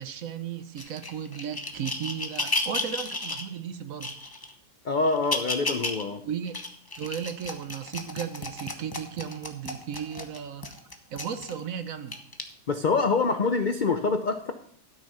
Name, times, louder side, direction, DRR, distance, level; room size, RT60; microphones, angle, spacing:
voice 1, 0.0-4.1 6.2-6.6 7.0-10.7 11.1-12.2, right 8 dB, 60° right, 9 dB, 1.1 m, -35 dB
sound 1, 0.8-3.5 4.0-4.5 5.0-6.0 6.5-11.6 12.1-12.4 13.2-13.3, left 2 dB, 20° left, 0.7 m, -33 dB
voice 2, 4.8-6.2 12.7-14.5, left 4 dB, 75° left, 7 dB, 0.4 m, -25 dB
12.5 x 6.4 x 5.4 m, 0.65 s
omnidirectional pair, 1.7 m